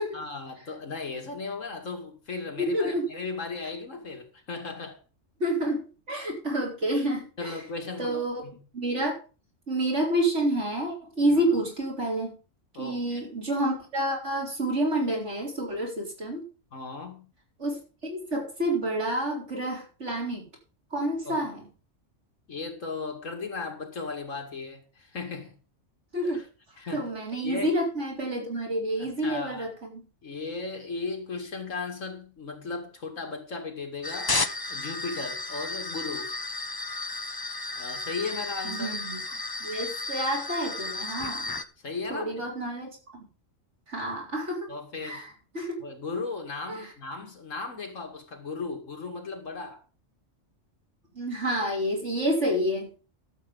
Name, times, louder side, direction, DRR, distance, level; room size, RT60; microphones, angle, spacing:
voice 1, 0.1-5.0 7.4-8.5 12.7-13.2 16.7-17.3 21.2-21.5 22.5-25.6 26.2-26.5 26.8-27.1 27.4-27.7 29.0-29.7 30.2-34.4 34.7-36.3 37.7-38.9 41.8-42.5 44.7-45.3 45.8-49.8, left 4 dB, 85° left, 2.7 m, -36 dB
voice 2, 2.6-3.0 5.4-7.5 8.0-8.4 8.7-9.2 9.7-12.3 12.8-16.4 17.6-20.4 20.9-21.6 26.1-26.4 26.9-30.0 38.6-39.2 39.6-41.5 42.1-43.2 43.9-44.7 45.0-45.2 45.5-45.8 46.7-46.8 51.1-53.1, right 1 dB, 65° right, 4.4 m, -29 dB
sound 1, 34.0-41.6, left 3 dB, 25° left, 0.6 m, -33 dB
12.0 x 7.9 x 5.3 m
omnidirectional pair, 1.3 m